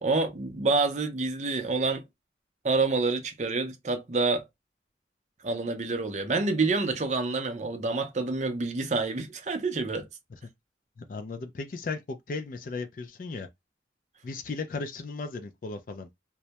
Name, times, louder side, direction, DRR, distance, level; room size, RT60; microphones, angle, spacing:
voice 1, 0.0-2.0 2.6-4.4 5.4-10.0, right 3 dB, 40° right, 0.5 m, -27 dB
voice 2, 11.0-13.5 14.2-16.1, left 3 dB, 50° left, 0.3 m, -36 dB
2.2 x 2.1 x 2.7 m
head